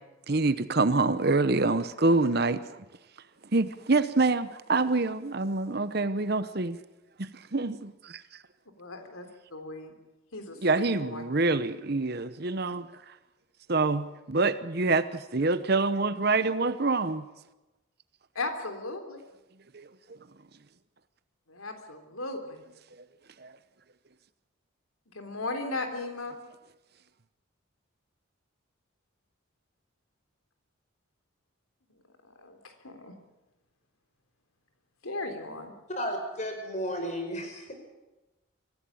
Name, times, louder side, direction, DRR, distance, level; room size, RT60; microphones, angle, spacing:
voice 1, 0.3-2.8 3.5-6.8 7.2-8.2 10.6-12.9 13.7-17.2 19.7-19.9 23.4-23.5, right 3 dB, 50° right, 0.9 m, -26 dB
voice 2, 8.8-10.0 10.3-11.2 18.4-19.2 21.5-22.6 25.1-26.4 31.9-33.2 35.0-35.7, left 2 dB, 90° left, 3.5 m, -37 dB
voice 3, 35.9-37.7, equal, 35° left, 5.2 m, -33 dB
24.5 x 15.5 x 8.7 m
head